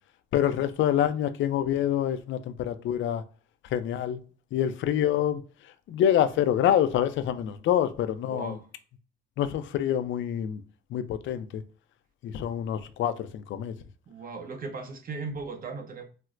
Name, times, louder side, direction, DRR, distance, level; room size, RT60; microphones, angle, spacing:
voice 1, 0.3-3.2 3.7-4.2 4.5-5.4 5.9-8.6 9.4-10.6 10.9-11.6 12.2-13.7, left 10 dB, 75° left, 0.5 m, -26 dB
voice 2, 8.3-8.6 14.1-16.0, right 4 dB, 45° right, 0.9 m, -37 dB
4.3 x 2.1 x 2.3 m
cardioid pair, 90°, 20 cm